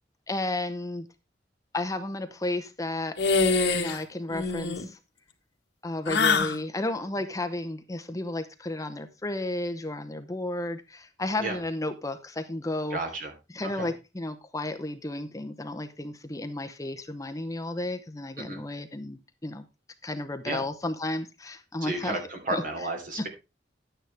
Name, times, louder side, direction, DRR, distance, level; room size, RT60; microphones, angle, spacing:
voice 1, 0.3-1.1 1.7-3.2 3.7-5.0 5.8-13.0 13.5-19.7 20.0-22.2 22.5-22.6 23.2-23.3, left 2 dB, 20° left, 0.7 m, -33 dB
sound 1, 3.2-4.0 4.3-4.8 6.1-6.6, left 4 dB, 75° left, 1.7 m, -24 dB
voice 2, 12.9-13.3 13.6-13.9 18.4-18.6 20.4-20.6 21.8-23.3, right 2 dB, 50° right, 3.2 m, -32 dB
11.5 x 9.1 x 3.4 m
head